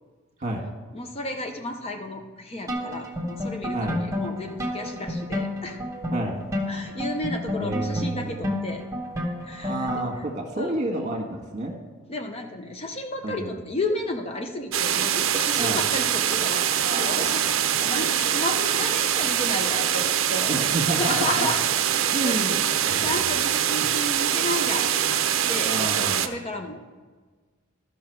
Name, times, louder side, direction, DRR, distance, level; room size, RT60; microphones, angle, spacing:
voice 1, 0.9-5.8 6.7-8.8 9.5-9.9 10.2-10.3 10.6-10.8 12.1-21.7 22.2-25.2 25.5-26.8, left 1 dB, 30° left, 4 dB, 0.6 m, -33 dB
sound 1, 2.7-10.3, left 1 dB, 15° right, 1.0 m, -31 dB
voice 2, 7.6-8.4 9.6-11.7 13.2-13.5 15.6-15.8 16.8-17.3 20.5-21.5 22.1-22.9 25.7-26.3, right 1 dB, 35° right, 0 dB, 1.5 m, -29 dB
sound 2, 14.7-26.3, right 10 dB, 65° right, 0.5 m, -24 dB
13.0 x 5.8 x 4.6 m, 1.4 s
head